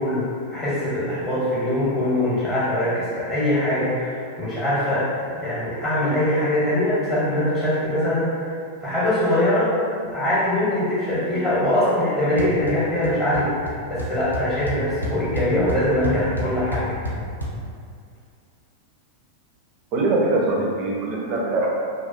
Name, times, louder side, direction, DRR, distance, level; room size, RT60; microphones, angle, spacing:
voice 1, 0.0-8.5 8.8-9.7 10.0-16.9, left 1 dB, 25° left, -10 dB, 0.7 m, -22 dB
sound 1, 12.4-12.8 13.0-13.4 13.7-13.8 14.0-17.5, equal, 85° left, 0.3 m, -28 dB
voice 2, 19.9-21.7, right 2 dB, 40° right, -2 dB, 0.4 m, -22 dB
2.3 x 2.2 x 2.4 m, 2.3 s
figure-of-eight pair, 90°, 0 cm